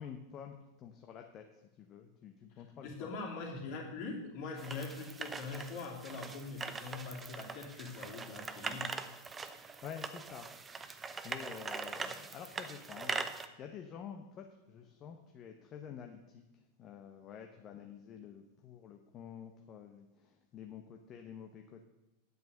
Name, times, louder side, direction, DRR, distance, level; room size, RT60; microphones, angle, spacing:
voice 1, 0.0-3.1 9.8-10.5 11.0-21.8, left 8 dB, 30° left, 4 dB, 0.9 m, -49 dB
voice 2, 2.8-8.9, left 4 dB, 45° left, 0 dB, 2.8 m, -42 dB
sound 1, 4.6-13.5, right 4 dB, 15° right, 0.7 m, -42 dB
9.2 x 8.1 x 6.4 m, 0.99 s
figure-of-eight pair, 90°, 0 cm